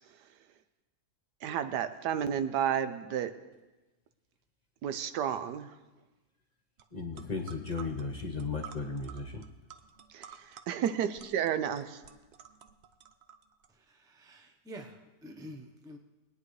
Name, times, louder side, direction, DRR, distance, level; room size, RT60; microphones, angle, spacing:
voice 1, 1.4-3.3 4.8-5.7 10.1-12.0, right 9 dB, 90° right, 10 dB, 1.3 m, -31 dB
sound 1, 6.8-6.9 7.1-13.7, right 8 dB, 60° right, 0.7 m, -51 dB
voice 2, 6.9-9.4, left 4 dB, 30° left, 1 dB, 0.9 m, -35 dB
voice 3, 13.9-16.0, equal, 5° right, 4 dB, 0.5 m, -48 dB
21.0 x 9.5 x 3.2 m, 1.1 s
omnidirectional pair, 1.7 m